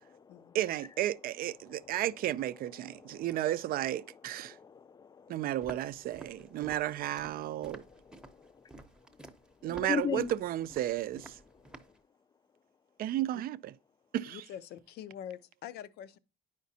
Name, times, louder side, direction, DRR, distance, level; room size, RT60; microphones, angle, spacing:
voice 1, 0.0-0.5 2.8-3.2 4.4-5.4 7.6-7.7 8.2-8.7 9.6-10.3, left 7 dB, 25° left, 0.4 m, -38 dB
voice 2, 0.5-4.6 5.3-7.8 9.6-11.4 13.0-13.7 14.1-14.4, right 13 dB, 60° right, 0.4 m, -33 dB
Walk footsteps, 5.6-12.0, right 1 dB, 5° right, 0.7 m, -50 dB
voice 3, 14.3-16.2, left 10 dB, 75° left, 0.5 m, -45 dB
9.1 x 5.1 x 2.7 m
cardioid pair, 110°, 17 cm